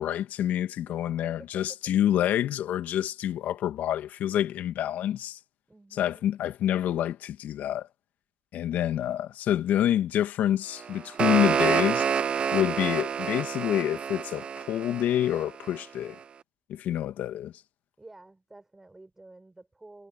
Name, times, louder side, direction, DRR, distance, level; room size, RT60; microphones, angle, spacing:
voice 1, 0.0-5.4 5.9-7.9 8.5-12.1 12.5-16.2 16.7-17.5, left 11 dB, 55° left, 2.0 m, -27 dB
voice 2, 0.9-1.8 5.7-6.3 18.0-20.1, right 2 dB, 10° right, 7.7 m, -51 dB
sound 1, 10.8-15.8, right 7 dB, 35° right, 0.6 m, -28 dB
cardioid pair, 110°, 3 cm